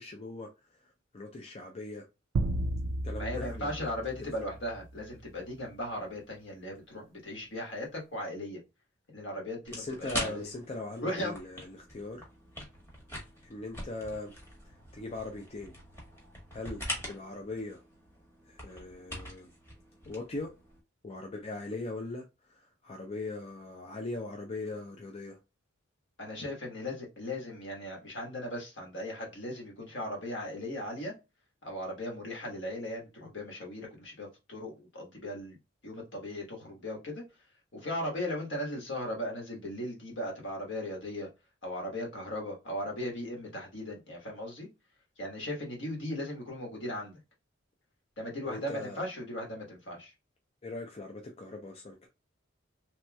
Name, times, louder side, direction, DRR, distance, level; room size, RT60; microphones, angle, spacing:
voice 1, 0.0-2.1 3.0-3.9 9.7-12.3 13.4-14.3 14.6-15.7 16.5-17.8 18.5-19.5 20.1-20.5 21.0-25.4 48.4-49.1 50.6-52.1, left 2 dB, 30° left, 0.4 m, -40 dB
sound 1, 2.3-4.9, right 2 dB, 65° right, 0.4 m, -33 dB
voice 2, 3.2-8.6 9.1-10.5 11.0-11.3 26.2-31.1 31.6-35.6 35.8-37.2 37.7-41.3 41.6-44.7 45.2-47.2 48.2-50.1, left 1 dB, 65° left, 1.4 m, -37 dB
sound 2, 9.6-20.8, left 1 dB, 15° left, 1.2 m, -43 dB
3.0 x 2.9 x 2.2 m
head